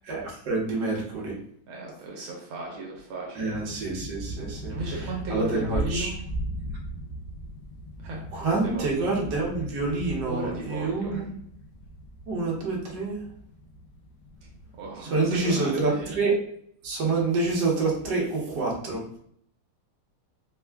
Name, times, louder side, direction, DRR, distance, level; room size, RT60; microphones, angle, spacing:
voice 1, 0.1-1.4 3.4-4.7 5.3-6.1 8.3-11.3 12.3-13.2 15.1-16.3 16.8-19.0, right 3 dB, 60° right, -3 dB, 1.5 m, -27 dB
voice 2, 1.7-3.6 4.7-6.2 8.0-8.2 8.5-9.1 10.2-11.2 14.8-16.1, right 2 dB, 75° right, -2 dB, 1.6 m, -35 dB
sound 1, 3.5-15.0, right 1 dB, 70° left, 1.2 m, -38 dB
4.4 x 2.3 x 3.3 m, 0.67 s
omnidirectional pair, 2.4 m